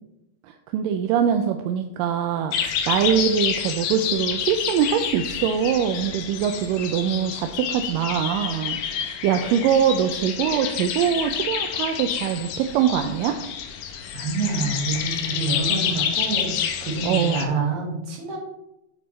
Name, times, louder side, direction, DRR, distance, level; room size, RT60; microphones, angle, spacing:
voice 1, 0.4-13.4 17.0-17.4, right 8 dB, 85° right, 6 dB, 2.2 m, -23 dB
sound 1, 2.5-17.5, left 8 dB, 70° left, 2.1 m, -28 dB
voice 2, 14.1-18.4, right 3 dB, 60° right, 0 dB, 2.9 m, -27 dB
8.9 x 8.1 x 3.2 m, 0.87 s
omnidirectional pair, 3.9 m